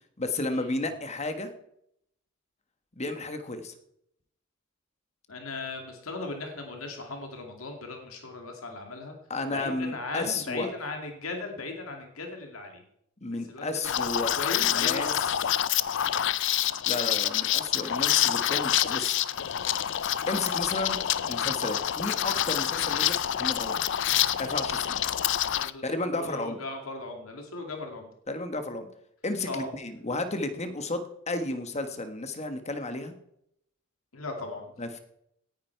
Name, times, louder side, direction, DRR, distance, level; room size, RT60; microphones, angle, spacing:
voice 1, 0.2-1.5 3.0-3.7 9.3-10.7 13.2-15.1 16.8-19.2 20.3-21.0 21.3-23.8 24.4-25.0 25.8-26.6 28.3-28.9 29.2-33.1 34.8-35.0, left 2 dB, 30° left, 8 dB, 1.4 m, -32 dB
voice 2, 5.3-9.2 9.5-12.8 13.5-13.7 14.0-14.1 14.3-15.5 16.0-16.2 22.5-22.9 25.5-28.1 29.5-29.7 34.1-34.7, left 3 dB, 85° left, 3 dB, 2.3 m, -38 dB
Liquid, 13.8-25.7, left 11 dB, 60° left, 0.5 m, -27 dB
17.5 x 10.5 x 4.6 m, 0.76 s
head